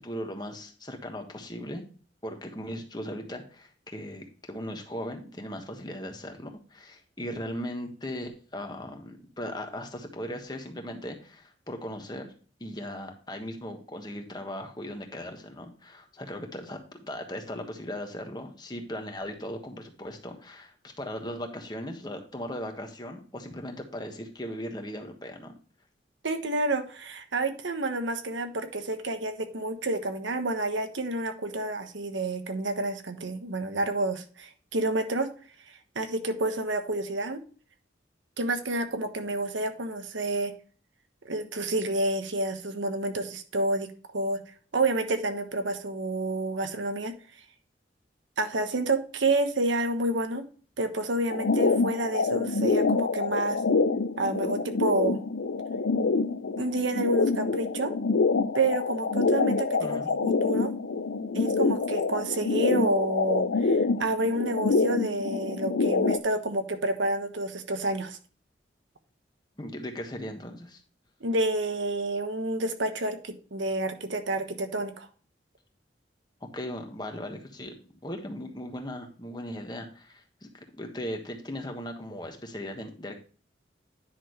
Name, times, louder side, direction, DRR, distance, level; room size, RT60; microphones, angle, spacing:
voice 1, 0.0-1.8 2.2-12.3 12.6-25.5 59.8-60.1 69.6-70.8 76.4-80.5 80.8-83.2, equal, 20° left, 4 dB, 1.3 m, -38 dB
voice 2, 26.2-35.3 35.9-37.4 38.4-40.5 41.2-43.9 44.1-44.4 44.7-47.1 48.4-50.4 50.8-53.6 54.2-55.2 56.6-57.9 58.5-60.7 61.3-68.2 71.2-75.1, right 2 dB, 90° right, 7 dB, 1.2 m, -29 dB
sound 1, 51.3-66.2, left 4 dB, 85° left, 0.6 m, -26 dB
10.0 x 6.1 x 3.1 m, 0.40 s
head